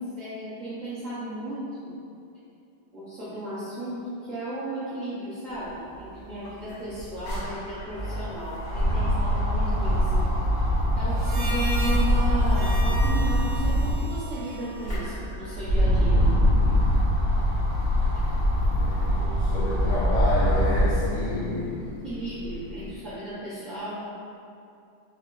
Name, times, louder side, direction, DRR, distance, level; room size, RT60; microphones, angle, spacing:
voice 1, 0.0-1.9 2.9-10.1 11.0-16.2 22.0-23.9, right 1 dB, 60° right, -13 dB, 0.8 m, -35 dB
sound 1, 5.9-6.0 6.3-14.1 14.6-21.1 21.6-22.7, equal, 40° left, 1.0 m, -23 dB
Harmonica, 11.1-15.7, right 1 dB, 75° right, 1.6 m, -37 dB
voice 2, 18.6-21.9, left 1 dB, 80° left, -8 dB, 0.9 m, -30 dB
4.1 x 3.7 x 2.5 m, 2.6 s
omnidirectional pair, 2.4 m